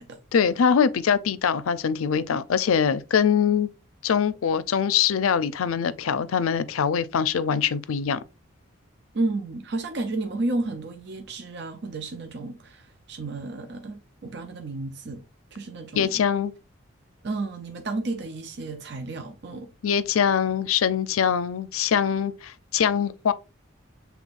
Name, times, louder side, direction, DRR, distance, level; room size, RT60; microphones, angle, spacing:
voice 1, 0.3-3.7 4.0-8.2 16.0-16.5 19.8-23.3, left 7 dB, 90° left, 0.4 m, -23 dB
voice 2, 9.1-15.2 15.5-16.2 17.2-19.7, right 2 dB, 55° right, 0.5 m, -32 dB
6.2 x 3.4 x 2.5 m
head